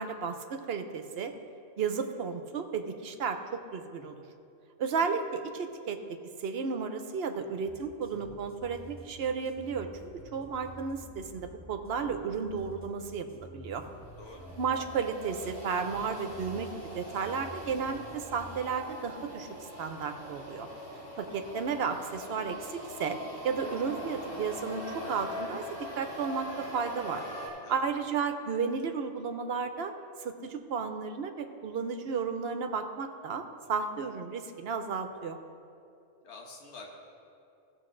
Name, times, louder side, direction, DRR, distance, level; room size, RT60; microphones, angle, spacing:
voice 1, 0.0-1.3 1.8-4.2 4.8-6.0 6.4-13.8 14.6-16.7 16.9-19.5 19.8-20.7 21.2-23.2 23.4-25.6 26.0-27.2 27.7-29.9 30.2-33.4 33.7-35.4, right 5 dB, 60° right, 7 dB, 0.9 m, -33 dB
sound 1, 7.7-18.6, equal, 10° left, 0.8 m, -50 dB
sound 2, 14.0-27.5, equal, 85° left, 3.2 m, -42 dB
voice 2, 14.2-14.5 27.6-27.8 36.2-36.9, left 3 dB, 65° left, 0 dB, 1.4 m, -47 dB
16.0 x 6.8 x 3.8 m, 2.6 s
omnidirectional pair, 1.3 m